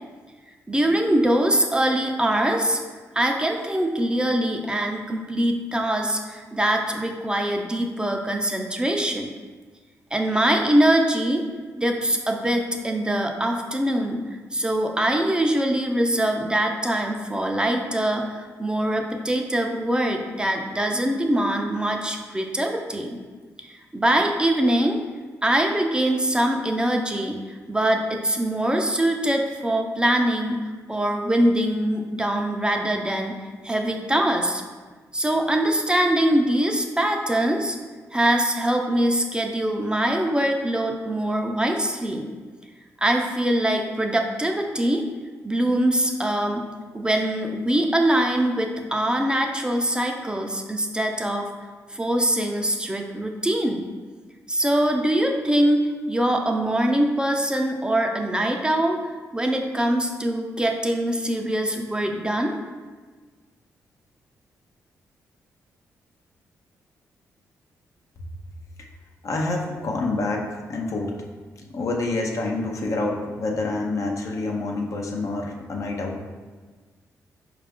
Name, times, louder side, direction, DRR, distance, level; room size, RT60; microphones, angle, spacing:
voice 1, 0.7-2.8 3.2-9.3 10.1-11.4 11.8-14.2 14.5-23.2 23.7-25.0 25.4-27.4 27.7-33.4 33.6-34.6 35.1-37.8 38.1-42.3 43.0-45.0 45.4-46.7 46.9-51.5 51.9-53.9 54.5-59.0 59.3-62.5, right 1 dB, 15° right, 2 dB, 0.5 m, -23 dB
voice 2, 69.2-71.2 71.6-76.2, left 2 dB, 55° left, 1 dB, 0.6 m, -27 dB
4.6 x 2.5 x 3.5 m, 1.4 s
supercardioid pair, 55°, 6 cm